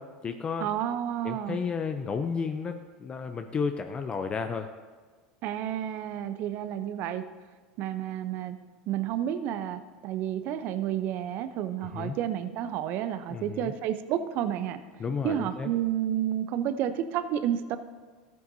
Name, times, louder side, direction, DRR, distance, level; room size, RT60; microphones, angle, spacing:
voice 1, 0.0-0.7 1.2-4.7 11.9-12.2 13.3-13.7 15.0-15.7, left 5 dB, 25° left, 7 dB, 0.5 m, -32 dB
voice 2, 0.6-1.6 5.4-7.2 7.8-8.6 8.9-14.8 15.2-17.8, right 10 dB, 55° right, 11 dB, 0.6 m, -30 dB
13.5 x 9.3 x 2.7 m, 1.4 s
hypercardioid pair, 90°, 4 cm